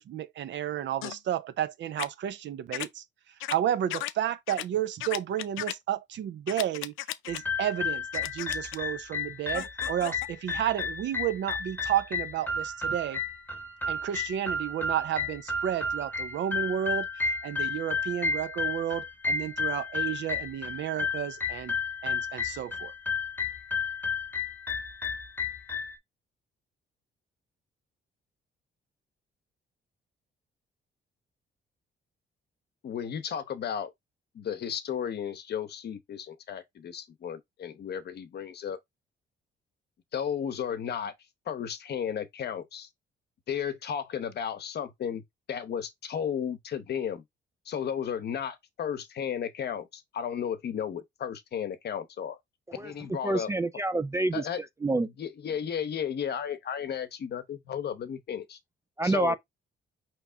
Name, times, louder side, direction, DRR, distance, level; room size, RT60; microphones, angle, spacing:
voice 1, 0.0-3.0 3.5-6.9 7.3-13.2 13.9-21.8 22.0-22.9, right 11 dB, 65° right, 0.6 m, -32 dB
sound 1, 1.0-1.2 2.0-2.1 2.7-2.9 3.4-3.6 3.9-4.1 4.5-4.6 5.0-5.7 6.5-7.4 8.1-8.8 9.5-10.3, left 14 dB, 90° left, 0.4 m, -35 dB
sound 2, 7.3-26.0, left 4 dB, 10° left, 1.0 m, -32 dB
voice 2, 32.8-33.9 34.3-38.8 40.1-41.1 41.5-42.9 43.5-45.2 45.5-47.2 47.7-52.4 52.8-53.5 54.3-54.6 55.0-58.6 59.0-59.4, left 8 dB, 55° left, 0.8 m, -34 dB
voice 3, 53.2-54.5 54.8-55.1 59.0-59.4, right 2 dB, 15° right, 0.3 m, -27 dB
4.7 x 3.1 x 3.4 m
cardioid pair, 90°, 20 cm